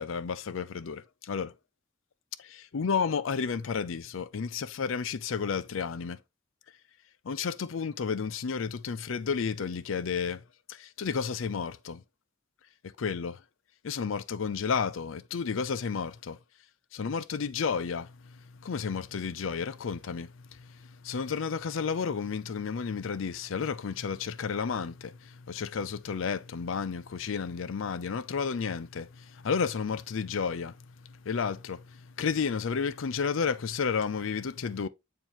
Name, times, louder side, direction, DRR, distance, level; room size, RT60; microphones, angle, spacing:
voice 1, 0.0-1.5 2.4-6.2 7.3-10.4 10.7-12.0 13.0-13.4 13.8-16.4 16.9-18.1 18.6-20.3 20.6-20.7 21.0-30.7 31.3-31.8 32.2-34.9, left 6 dB, 75° left, 0.5 m, -32 dB
7.3 x 4.5 x 2.9 m
head